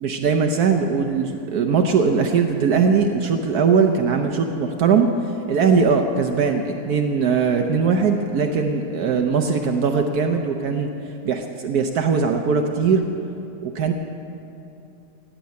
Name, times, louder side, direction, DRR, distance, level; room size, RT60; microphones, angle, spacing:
voice 1, 0.0-5.1 5.5-10.9 11.2-13.1 13.6-13.9, right 5 dB, 70° right, 4 dB, 1.3 m, -20 dB
17.0 x 7.6 x 9.3 m, 2.7 s
omnidirectional pair, 1.8 m